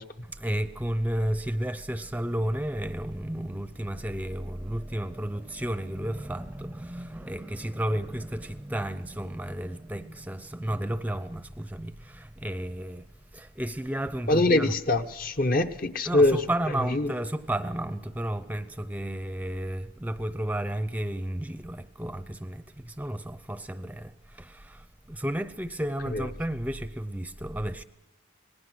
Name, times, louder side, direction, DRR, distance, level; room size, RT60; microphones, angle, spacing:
voice 1, 0.2-13.1 13.3-14.8 16.0-27.8, right 1 dB, 10° right, 0.7 m, -32 dB
voice 2, 14.3-16.4 16.9-17.1 26.1-26.2, left 2 dB, 45° left, 1.1 m, -23 dB
26.0 x 20.0 x 6.3 m
head